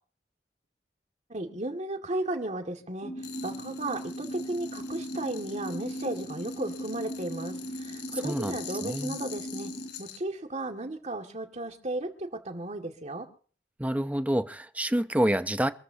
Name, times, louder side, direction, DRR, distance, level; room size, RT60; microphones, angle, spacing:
voice 1, 1.3-3.1 3.4-9.7 10.0-13.3, right 2 dB, 40° right, 2.2 m, -34 dB
sound 1, 3.0-9.9, equal, 20° left, 4.9 m, -38 dB
sound 2, 3.2-10.2, left 9 dB, 70° left, 3.8 m, -45 dB
voice 2, 8.2-9.2 13.8-15.7, right 1 dB, 10° right, 0.8 m, -28 dB
27.0 x 13.5 x 2.9 m
head